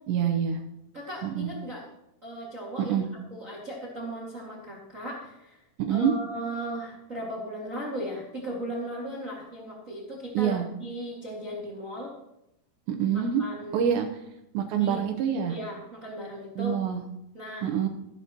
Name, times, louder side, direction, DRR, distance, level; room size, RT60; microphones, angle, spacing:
voice 1, 0.1-0.6 1.2-1.5 2.8-3.1 5.8-6.1 10.3-10.7 12.9-13.4 13.7-14.1 14.5-15.6 16.6-17.0 17.6-17.9, right 8 dB, 80° right, 4 dB, 2.9 m, -26 dB
voice 2, 0.9-1.8 2.2-3.0 3.3-5.6 5.9-12.1 13.1-13.8 14.8-15.0 15.5-16.7 17.3-17.7, right 1 dB, 50° right, -4 dB, 0.9 m, -37 dB
16.0 x 11.0 x 3.0 m, 0.84 s
omnidirectional pair, 5.4 m